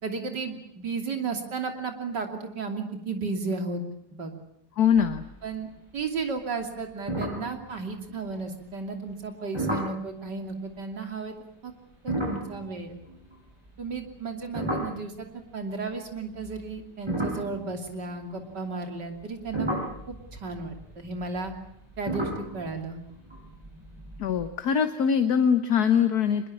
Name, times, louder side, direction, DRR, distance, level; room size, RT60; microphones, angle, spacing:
voice 1, 0.0-3.8 4.2-4.3 5.4-5.7 5.9-11.3 11.6-11.7 12.0-13.0 13.8-19.7 20.1-21.5 22.0-23.0, right 4 dB, 80° right, 5 dB, 3.5 m, -34 dB
voice 2, 4.8-5.2 24.2-26.5, left 7 dB, 65° left, 8 dB, 1.6 m, -22 dB
sound 1, 4.9-5.6 5.9-6.3 6.6-6.7 7.1-8.4 9.5-10.0 11.9-15.5 16.3-18.5 19.1-24.5, right 1 dB, 15° right, 8.1 m, -34 dB
24.5 x 22.0 x 8.7 m, 0.76 s
omnidirectional pair, 1.8 m